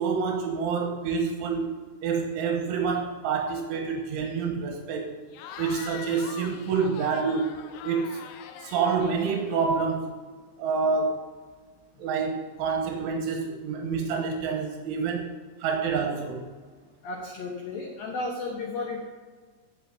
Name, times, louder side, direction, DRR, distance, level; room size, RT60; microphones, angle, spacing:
voice 1, 0.0-1.7 2.0-5.1 5.6-7.5 7.8-8.2 8.6-10.1 10.6-11.2 12.0-15.3 15.6-16.5, right 5 dB, 80° right, 2 dB, 3.7 m, -27 dB
Cheering / Crowd, 5.3-9.9, left 8 dB, 85° left, 3.1 m, -43 dB
voice 2, 17.0-19.0, left 3 dB, 70° left, 0 dB, 2.3 m, -33 dB
16.0 x 5.6 x 7.2 m, 1.5 s
omnidirectional pair, 5.6 m